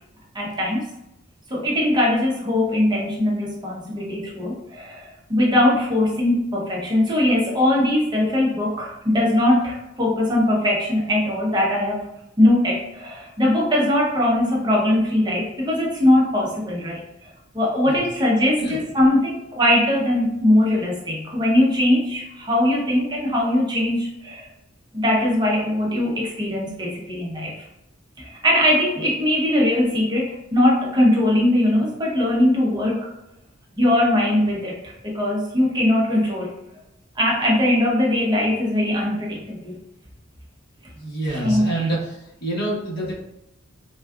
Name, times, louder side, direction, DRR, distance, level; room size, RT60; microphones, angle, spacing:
voice 1, 0.3-0.9 1.5-12.0 12.4-17.0 17.5-24.5 24.9-27.6 28.2-33.1 33.7-36.5 37.2-39.8 41.3-41.9, left 1 dB, 20° right, -3 dB, 0.6 m, -20 dB
voice 2, 40.9-42.0 42.4-43.1, right 1 dB, 55° left, -4 dB, 1.0 m, -26 dB
3.5 x 2.3 x 2.3 m, 0.87 s
head